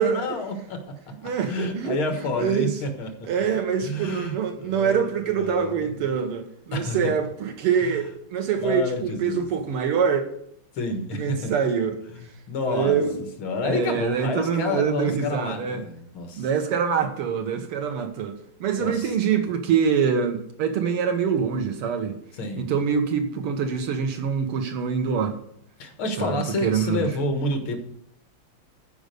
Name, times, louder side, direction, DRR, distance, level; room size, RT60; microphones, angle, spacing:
voice 1, 0.0-3.5 3.8-5.1 5.4-6.0 6.7-7.1 7.8-8.0 8.6-9.5 10.7-11.5 12.5-13.0 13.4-16.5 18.8-19.1 22.3-22.7 25.8-27.8, left 2 dB, 70° left, 2.3 m, -29 dB
voice 2, 1.2-2.7 3.3-10.2 11.1-11.9 12.7-13.2 13.6-15.8 16.4-22.2 22.6-25.4 26.2-27.1, right 7 dB, 90° right, 2.2 m, -25 dB
12.0 x 5.2 x 6.7 m
omnidirectional pair, 2.4 m